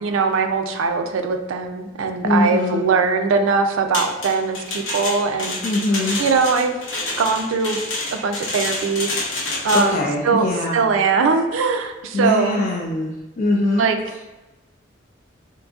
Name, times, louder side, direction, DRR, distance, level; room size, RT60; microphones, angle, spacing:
voice 1, 0.0-5.6 6.2-6.7 7.2-7.8 8.1-9.1 9.6-10.5 10.7-12.6 13.8-14.0, right 4 dB, 85° right, 6 dB, 0.4 m, -21 dB
voice 2, 2.2-2.8 5.6-6.2 9.7-10.8 12.1-13.1 13.4-13.9, left 2 dB, 45° left, -3 dB, 0.4 m, -22 dB
sound 1, 3.9-10.0, left 2 dB, 70° left, 0.8 m, -28 dB
3.7 x 2.6 x 2.4 m, 1.1 s
head